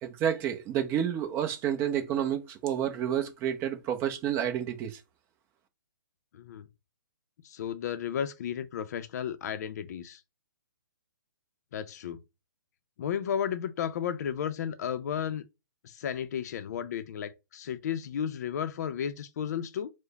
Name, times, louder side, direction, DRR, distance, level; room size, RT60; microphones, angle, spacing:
voice 1, 0.0-5.0, right 9 dB, 20° right, 0.7 m, -30 dB
voice 2, 6.3-6.7 7.4-10.2 11.7-12.2 13.0-15.4 15.8-19.9, left 8 dB, 50° left, 0.6 m, -33 dB
4.8 x 2.2 x 4.0 m
hypercardioid pair, 145°, 11 cm